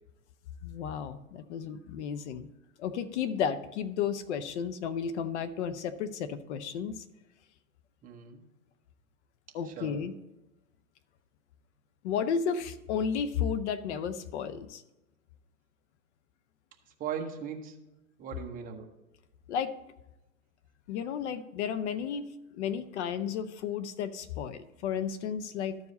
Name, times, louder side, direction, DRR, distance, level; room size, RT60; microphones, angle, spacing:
voice 1, 0.6-2.5 2.8-7.0 9.5-10.1 12.0-14.8 19.5-19.7 20.9-25.8, left 7 dB, 55° left, 13 dB, 0.7 m, -33 dB
voice 2, 8.0-8.4 9.6-10.0 17.0-17.8 18.2-18.9, right 7 dB, 20° right, 2 dB, 1.0 m, -38 dB
13.0 x 4.8 x 4.0 m, 0.97 s
hypercardioid pair, 135°, 41 cm